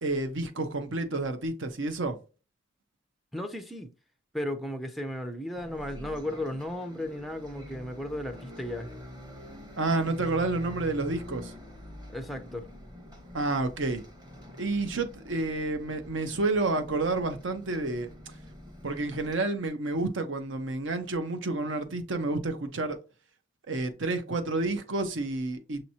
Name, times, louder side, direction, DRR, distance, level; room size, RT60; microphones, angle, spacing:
voice 1, 0.0-2.2 9.8-11.5 13.3-14.0 14.6-18.1 18.8-23.0 23.7-25.8, right 2 dB, 70° right, 0.8 m, -29 dB
voice 2, 3.3-3.9 4.3-8.9 12.1-12.7, left 1 dB, ahead, 0.4 m, -35 dB
Bus, 5.5-19.4, equal, 20° right, 1.0 m, -46 dB
6.4 x 2.9 x 2.7 m
head